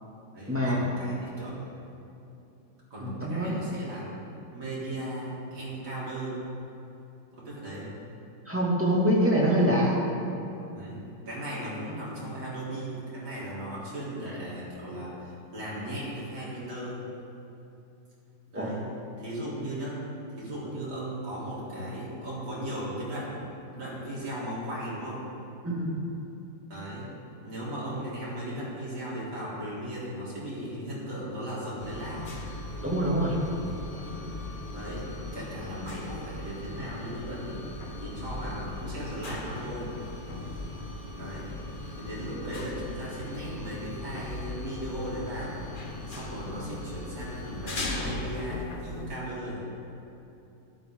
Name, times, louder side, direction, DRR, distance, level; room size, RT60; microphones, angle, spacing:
voice 1, 0.3-1.5 2.9-4.1 4.5-6.4 7.4-7.9 10.7-11.0 11.3-17.1 18.5-18.8 19.2-20.0 20.4-25.2 26.7-32.2 34.7-37.6 38.0-39.9 41.2-41.6 42.0-45.6 46.1-49.6, right 1 dB, 85° right, -8 dB, 4.7 m, -37 dB
voice 2, 3.0-3.6 8.5-10.0 18.5-18.7 25.6-26.0 32.8-33.4, equal, 5° right, -5 dB, 2.4 m, -25 dB
sound 1, 31.8-49.1, left 2 dB, 30° left, 1.2 m, -38 dB
15.5 x 12.5 x 4.0 m, 2.8 s
omnidirectional pair, 2.1 m